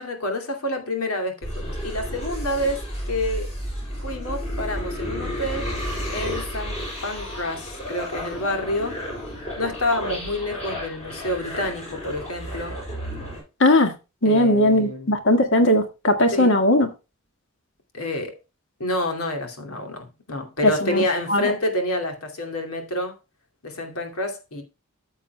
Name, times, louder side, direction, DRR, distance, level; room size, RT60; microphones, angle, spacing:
voice 1, 0.0-3.5 4.0-5.7 6.1-6.8 7.0-9.0 9.6-12.7 14.2-15.2 16.3-16.5 17.9-18.4 18.8-23.1 23.6-24.6, left 1 dB, 90° left, 2.4 m, -28 dB
sound 1, 1.4-13.4, equal, 30° left, 6.5 m, -32 dB
voice 2, 13.6-13.9 14.2-16.9 20.6-21.0 21.3-21.5, left 1 dB, 55° left, 1.8 m, -18 dB
14.0 x 7.2 x 2.3 m
head